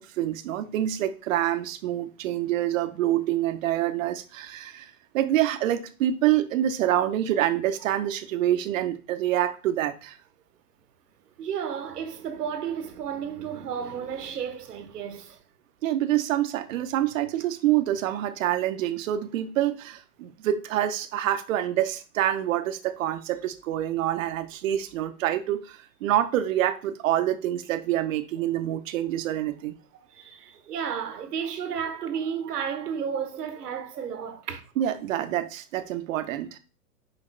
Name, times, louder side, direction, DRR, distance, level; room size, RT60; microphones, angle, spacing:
voice 1, 0.0-10.2 15.8-29.7 34.8-36.6, right 12 dB, 60° right, 0.9 m, -26 dB
voice 2, 11.4-15.4 30.1-34.6, right 7 dB, 85° right, 1.2 m, -32 dB
6.5 x 5.2 x 3.3 m
hypercardioid pair, 125°, 46 cm